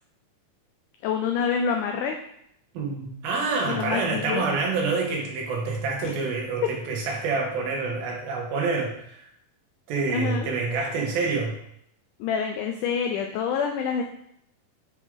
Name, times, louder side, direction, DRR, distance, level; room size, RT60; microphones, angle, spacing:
voice 1, 1.0-2.2 3.7-4.5 6.0-6.1 10.1-10.5 12.2-14.0, left 6 dB, 90° left, 4 dB, 1.8 m, -27 dB
voice 2, 2.7-9.3 9.9-11.6, right 4 dB, 85° right, -1 dB, 3.0 m, -27 dB
6.7 x 4.8 x 3.5 m, 0.73 s
omnidirectional pair, 4.2 m